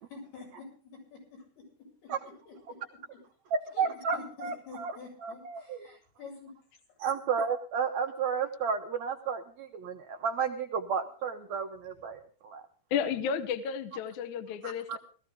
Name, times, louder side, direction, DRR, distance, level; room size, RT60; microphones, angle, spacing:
voice 1, 0.1-2.8 3.1-3.2 3.7-6.5, left 4 dB, 90° left, -1 dB, 9.3 m, -48 dB
voice 2, 3.5-5.9 7.0-12.6 14.6-15.0, right 6 dB, 75° right, 4 dB, 1.6 m, -32 dB
voice 3, 12.9-15.0, left 7 dB, 65° left, 11 dB, 2.1 m, -32 dB
18.5 x 14.5 x 3.6 m, 0.41 s
omnidirectional pair, 4.3 m